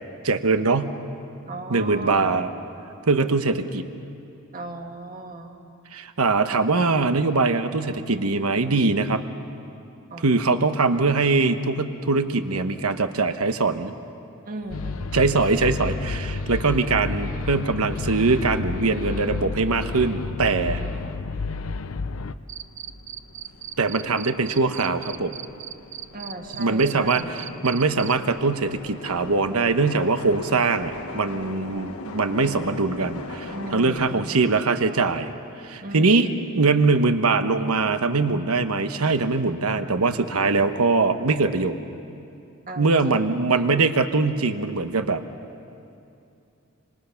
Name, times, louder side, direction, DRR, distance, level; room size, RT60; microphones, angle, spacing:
voice 1, 0.2-0.9 1.7-2.5 3.1-3.9 5.9-9.2 10.2-13.9 15.1-20.8 23.8-25.4 26.6-35.3 35.6-36.3 36.5-41.8 42.8-45.2, right 3 dB, 85° right, 9 dB, 1.1 m, -22 dB
voice 2, 1.5-2.4 4.5-5.6 10.1-10.9 14.4-15.3 20.5-21.3 26.1-27.4 33.5-34.3 35.8-36.4 42.7-43.5, right 1 dB, 40° right, 3 dB, 1.8 m, -37 dB
sound 1, 14.6-34.1, left 3 dB, 85° left, 1.4 m, -43 dB
sound 2, 14.7-22.3, left 4 dB, 70° left, 0.6 m, -30 dB
Cricket, 22.5-28.1, right 11 dB, 55° right, 0.7 m, -37 dB
26.5 x 26.5 x 5.8 m, 2.7 s
head